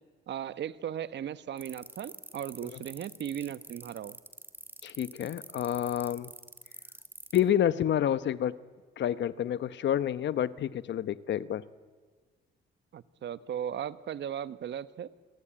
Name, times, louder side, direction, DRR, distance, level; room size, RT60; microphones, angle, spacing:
voice 1, 0.3-4.2 12.9-15.1, right 9 dB, 65° right, 14 dB, 1.1 m, -37 dB
sound 1, 1.6-7.4, right 1 dB, 10° right, 2.5 m, -46 dB
voice 2, 4.8-6.3 7.3-8.5 9.0-11.6, left 10 dB, 65° left, 15 dB, 1.0 m, -29 dB
28.5 x 23.0 x 8.8 m, 1.5 s
cardioid pair, 90°, 20 cm